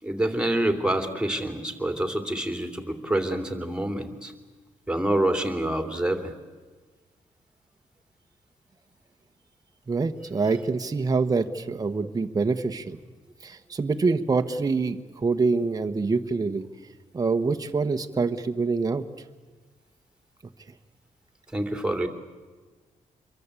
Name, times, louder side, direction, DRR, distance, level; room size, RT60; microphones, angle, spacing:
voice 1, 0.0-4.3 4.9-6.3 21.5-22.1, right 1 dB, 5° right, 7 dB, 3.0 m, -27 dB
voice 2, 9.9-13.0 13.4-16.6 17.1-19.0, right 4 dB, 30° right, 6 dB, 1.3 m, -25 dB
27.0 x 23.0 x 8.4 m, 1.4 s
cardioid pair, 120°, 13 cm